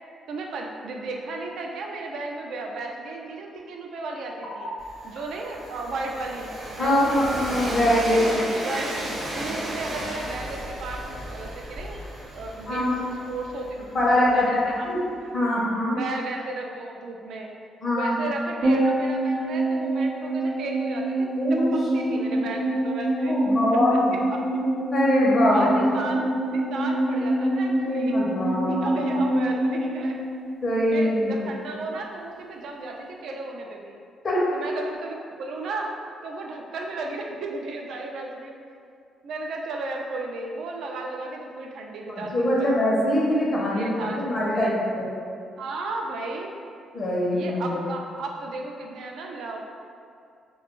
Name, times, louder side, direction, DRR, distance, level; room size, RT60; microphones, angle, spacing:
voice 1, 0.3-4.7 5.0-7.3 8.1-9.1 9.3-12.0 12.3-13.7 14.1-14.9 15.2-15.3 16.0-17.5 17.9-23.4 23.9-24.0 24.3-24.6 25.4-26.3 26.5-28.2 28.7-30.2 30.9-34.0 34.5-35.9 36.2-38.6 39.2-42.7 43.7-44.2 44.5-44.8 45.6-46.5 47.3-49.6, right 3 dB, 75° right, 1 dB, 0.3 m, -34 dB
Train, 4.8-14.6, right 1 dB, 45° right, 0.6 m, -35 dB
voice 2, 6.8-8.2 12.7-13.0 13.9-14.6 14.8-15.0 15.3-16.0 17.8-18.1 21.4-21.7 22.3-22.4 23.3-24.1 24.6-25.7 27.9-29.0 30.6-31.5 34.2-34.4 42.1-45.1 46.9-47.8, left 1 dB, 40° left, -5 dB, 0.6 m, -23 dB
sound 1, 18.6-31.1 31.4-31.5, right 1 dB, 90° right, 0.7 m, -25 dB
2.4 x 2.2 x 3.0 m, 2.3 s
cardioid pair, 90°, 0 cm